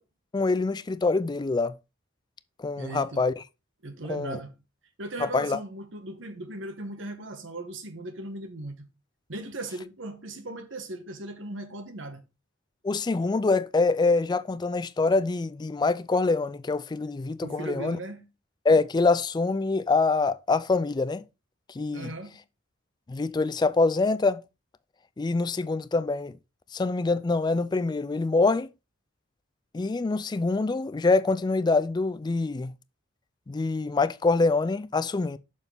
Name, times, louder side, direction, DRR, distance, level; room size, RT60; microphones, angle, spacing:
voice 1, 0.3-1.8 2.6-3.4 4.1-4.4 5.2-5.6 12.8-18.0 18.6-21.2 21.8-22.1 23.1-24.4 25.2-26.4 26.7-28.7 29.7-32.7 33.5-35.4, left 3 dB, 20° left, 0.3 m, -25 dB
voice 2, 2.8-3.2 3.8-4.5 5.0-8.9 9.3-12.2 17.4-18.3 21.9-22.4, right 2 dB, 65° right, 1.3 m, -38 dB
6.8 x 6.4 x 3.5 m
head